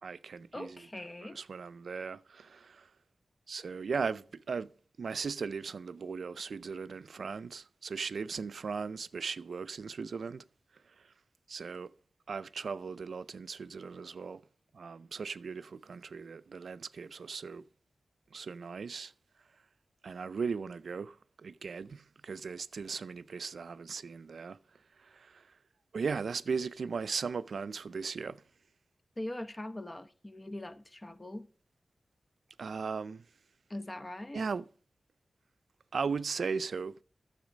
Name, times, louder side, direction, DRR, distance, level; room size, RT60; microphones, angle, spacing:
voice 1, 0.0-0.8 1.3-2.9 3.5-4.7 5.0-10.4 11.0-11.1 11.5-11.9 12.3-14.4 14.7-17.6 18.3-19.1 20.0-24.6 25.0-25.5 25.9-28.4 32.6-33.2 34.3-34.6 35.9-37.0, right 5 dB, 75° right, 0.4 m, -37 dB
voice 2, 0.5-1.4 29.2-31.5 33.7-34.5, left 1 dB, 25° left, 1.0 m, -41 dB
10.5 x 7.2 x 5.1 m
cardioid pair, 50°, 0 cm